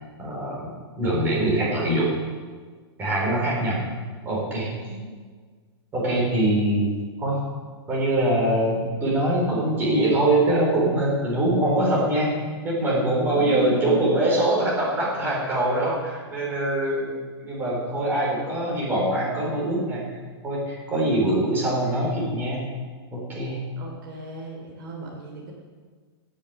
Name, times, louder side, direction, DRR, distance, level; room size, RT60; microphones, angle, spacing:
voice 1, 0.2-0.7 1.0-2.2 3.0-3.8 4.2-4.7 5.9-6.9 7.2-7.4 7.9-12.3 12.6-20.1 20.4-22.6 23.1-23.7, right 1 dB, 15° right, -5 dB, 4.4 m, -23 dB
voice 2, 3.8-4.2 4.8-5.1 13.3-14.2 23.8-25.5, left 1 dB, 50° right, 0 dB, 3.0 m, -35 dB
17.5 x 7.6 x 7.0 m, 1.6 s
hypercardioid pair, 165°, 14 cm